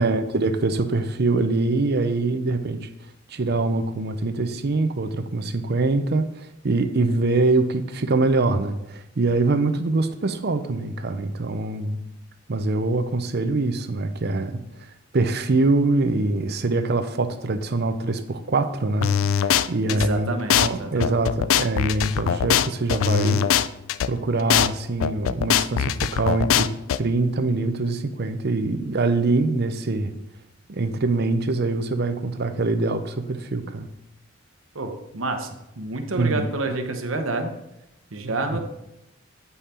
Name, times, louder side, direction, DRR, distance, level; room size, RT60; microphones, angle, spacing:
voice 1, 0.0-2.9 3.3-12.0 12.5-14.6 15.1-23.4 24.1-26.7 27.0-30.1 30.7-33.9 36.2-36.5 38.5-38.6, right 3 dB, 55° right, 9 dB, 0.6 m, -24 dB
sound 1, 19.0-20.1 20.5-20.7 21.0-24.1 24.5-24.7 25.0-27.0, left 9 dB, 90° left, 0.3 m, -21 dB
voice 2, 19.9-21.2 34.7-35.5 35.8-37.5 38.1-38.6, right 3 dB, 85° right, 5 dB, 1.0 m, -28 dB
8.3 x 5.6 x 4.3 m, 0.87 s
head